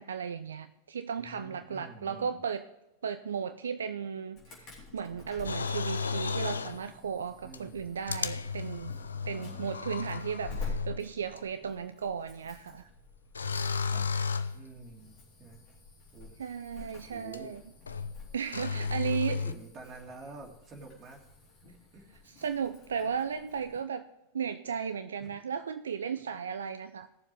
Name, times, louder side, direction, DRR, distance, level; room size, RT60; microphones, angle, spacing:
voice 1, 0.0-2.7 3.0-8.9 9.3-12.9 16.4-17.6 18.3-19.4 22.3-24.1 24.3-27.1, right 7 dB, 65° right, 10 dB, 0.5 m, -35 dB
voice 2, 1.1-2.4 7.4-7.9 9.3-9.7 13.9-14.1 14.5-15.6 16.1-16.4 16.8-17.5 18.7-21.2 21.6-22.1 25.2-25.4, right 3 dB, 25° right, 0 dB, 2.8 m, -49 dB
Insect / Alarm, 4.4-23.8, left 3 dB, 35° left, 3.9 m, -48 dB
sound 1, 5.4-6.8 7.5-7.6 8.1-11.0 11.4-11.5 13.3-14.6 17.3-17.4 17.9-18.2 18.5-19.5, left 5 dB, 75° left, 0.5 m, -33 dB
18.5 x 7.2 x 3.3 m, 0.94 s
figure-of-eight pair, 90°, 0 cm